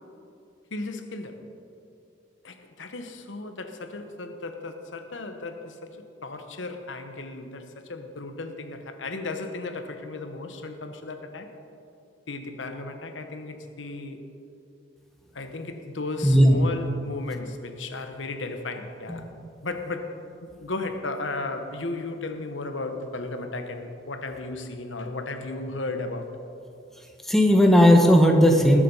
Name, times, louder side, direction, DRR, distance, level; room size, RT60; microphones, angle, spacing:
voice 1, 0.7-1.4 2.4-11.5 12.3-14.2 15.3-19.3 19.6-26.3, left 2 dB, 80° left, 7 dB, 1.1 m, -35 dB
voice 2, 16.2-16.6 19.1-19.4 27.2-28.8, equal, ahead, 2 dB, 1.2 m, -17 dB
20.0 x 7.5 x 5.6 m, 2.6 s
head